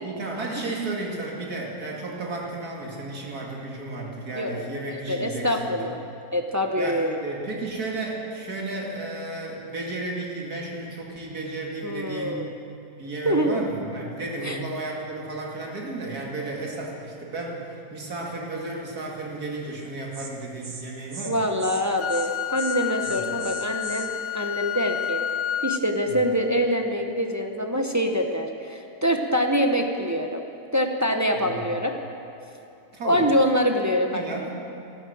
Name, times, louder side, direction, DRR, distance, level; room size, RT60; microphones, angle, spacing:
voice 1, 0.0-5.9 6.8-12.4 13.0-21.4 23.0-23.3 26.1-26.2 31.4-31.7 32.9-33.3 34.1-34.5, right 2 dB, 80° right, -2 dB, 2.8 m, -33 dB
voice 2, 5.1-6.0 6.3-7.2 11.8-12.5 13.2-13.6 14.4-14.6 21.3-25.2 25.6-30.4 30.7-31.9 33.0-34.5, equal, 15° right, 3 dB, 0.7 m, -25 dB
Insect, 19.7-19.9 20.1-20.3 20.6-20.8 21.1-21.3 21.6-21.8 22.1-22.3 22.6-24.1, right 5 dB, 60° right, 1.8 m, -39 dB
Wind instrument woodwind instrument, 22.0-25.9, left 11 dB, 85° left, 0.5 m, -30 dB
13.5 x 12.0 x 7.8 m, 2.8 s
omnidirectional pair, 1.6 m